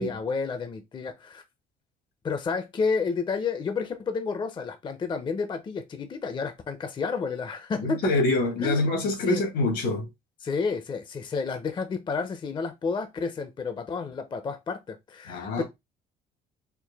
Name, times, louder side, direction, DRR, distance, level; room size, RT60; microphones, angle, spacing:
voice 1, 0.0-1.4 2.2-8.1 8.6-8.8 9.3-9.4 10.4-15.6, left 5 dB, 25° left, 0.5 m, -30 dB
voice 2, 7.8-10.1 15.3-15.6, left 2 dB, 85° left, 1.7 m, -25 dB
4.5 x 2.2 x 3.3 m
cardioid pair, 110°, 17 cm